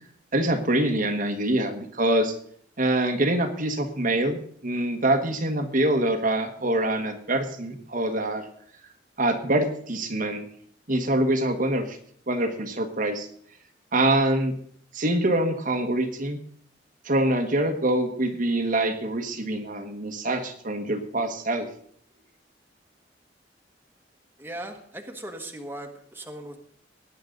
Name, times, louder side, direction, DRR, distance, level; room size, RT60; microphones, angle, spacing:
voice 1, 0.3-2.4 2.8-8.5 9.2-10.5 10.9-12.0 12.3-13.3 13.9-14.5 14.9-16.4 17.0-21.7, right 1 dB, 50° right, 5 dB, 1.4 m, -25 dB
voice 2, 24.4-26.6, right 1 dB, 10° right, 3 dB, 1.5 m, -38 dB
18.0 x 9.9 x 3.9 m, 0.62 s
head